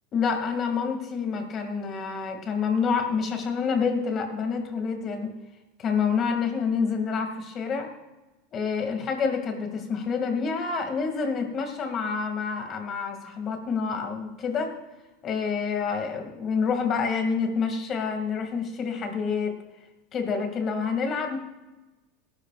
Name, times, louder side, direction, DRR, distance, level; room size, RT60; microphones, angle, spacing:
voice 1, 0.1-5.3 5.8-7.9 8.5-14.7 15.2-19.6 20.1-21.4, left 5 dB, 35° left, 4 dB, 2.4 m, -28 dB
18.0 x 11.5 x 2.5 m, 1.1 s
supercardioid pair, 130°, 0 cm